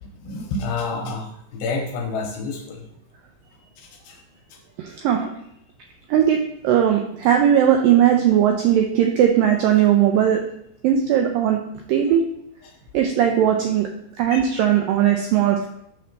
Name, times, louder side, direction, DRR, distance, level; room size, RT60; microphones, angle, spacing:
voice 1, 0.0-2.9 3.8-4.2 4.5-4.6 12.0-12.1 12.6-12.7 14.3-14.4, left 3 dB, 80° left, 3 dB, 2.3 m, -29 dB
voice 2, 4.8-5.3 6.1-10.4 10.8-11.6 11.9-12.2 12.9-13.9 14.2-15.7, right 10 dB, 90° right, 2 dB, 2.0 m, -18 dB
6.0 x 4.2 x 5.1 m, 0.75 s
omnidirectional pair, 4.6 m